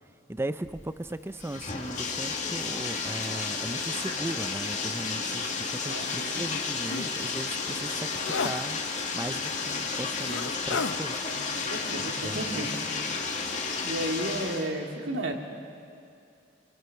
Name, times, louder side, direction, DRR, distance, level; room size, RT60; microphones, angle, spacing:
voice 1, 0.3-8.8 9.1-11.2 12.2-12.7, right 1 dB, 15° right, 12 dB, 0.5 m, -37 dB
Bathtub (filling or washing), 0.6-14.7, left 4 dB, 40° left, 2.2 m, -32 dB
voice 2, 5.8-6.7 11.3-12.8 13.5-15.3, right 1 dB, 70° right, 2 dB, 2.5 m, -34 dB
sound 1, 6.0-6.2 6.5-6.6 6.9-7.1 7.5-7.7 8.2-8.6 9.5-9.6 10.2-11.0 12.3-12.8 13.1-13.3, left 4 dB, 85° left, 0.7 m, -33 dB
28.0 x 23.0 x 5.9 m, 2.4 s
head